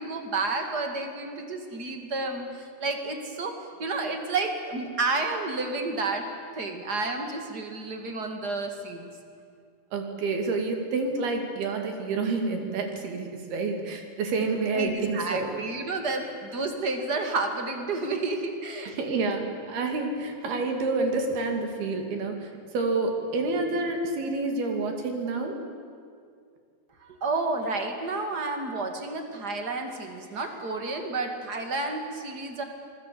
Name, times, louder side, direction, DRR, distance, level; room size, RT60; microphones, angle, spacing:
voice 1, 0.0-3.5 3.8-6.3 6.6-9.1 14.7-18.9 27.0-32.6, right 3 dB, 35° right, 5 dB, 1.7 m, -30 dB
voice 2, 9.9-15.5 18.9-25.6, right 3 dB, 65° right, 4 dB, 4.3 m, -28 dB
26.5 x 20.5 x 8.5 m, 2.3 s
omnidirectional pair, 4.9 m